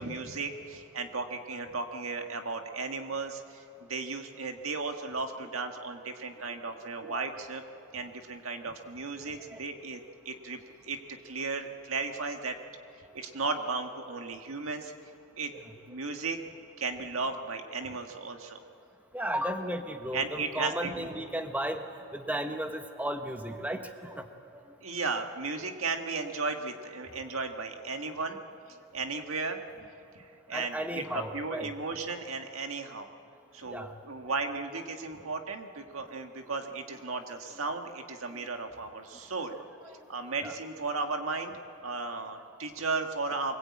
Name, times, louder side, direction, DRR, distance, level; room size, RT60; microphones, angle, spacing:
voice 1, 0.0-7.6 7.9-12.6 13.1-14.9 15.4-15.5 15.9-16.4 16.8-18.6 20.1-21.1 24.8-28.4 28.9-29.6 30.2-33.1 33.5-39.6 40.1-43.6, right 4 dB, 75° right, 5 dB, 1.7 m, -35 dB
voice 2, 19.1-21.8 22.1-24.6 30.5-31.7 33.7-33.9 39.8-39.9 40.4-40.5, right 1 dB, 5° right, 6 dB, 1.0 m, -35 dB
24.0 x 22.0 x 8.6 m, 2.6 s
head